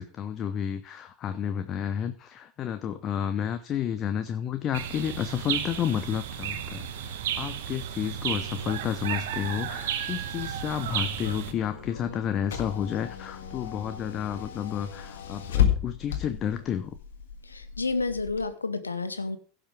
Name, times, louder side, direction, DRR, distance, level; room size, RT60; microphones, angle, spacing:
voice 1, 0.0-16.9, left 9 dB, 40° left, 10 dB, 0.8 m, -31 dB
sound 1, 4.7-11.5, right 9 dB, 65° right, 1.2 m, -33 dB
Car / Engine, 10.1-18.4, left 9 dB, 70° left, 1.6 m, -33 dB
voice 2, 17.4-19.4, left 3 dB, 90° left, 12 dB, 1.0 m, -30 dB
16.0 x 5.9 x 5.0 m, 0.42 s
figure-of-eight pair, 85°, 0 cm